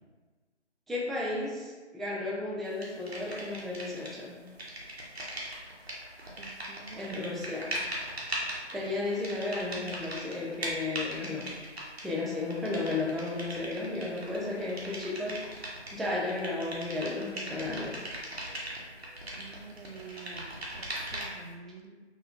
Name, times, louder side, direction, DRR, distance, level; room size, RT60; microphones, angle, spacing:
voice 1, 0.9-4.4 6.9-7.8 8.7-11.5 12.0-18.0, left 2 dB, ahead, -4 dB, 0.3 m, -34 dB
sound 1, 2.8-4.2 4.5-21.5, right 1 dB, 60° right, 0.8 m, -39 dB
voice 2, 6.4-7.3 19.4-22.0, right 4 dB, 85° right, 4 dB, 0.5 m, -48 dB
3.0 x 2.8 x 2.5 m, 1.3 s
figure-of-eight pair, 170°, 35 cm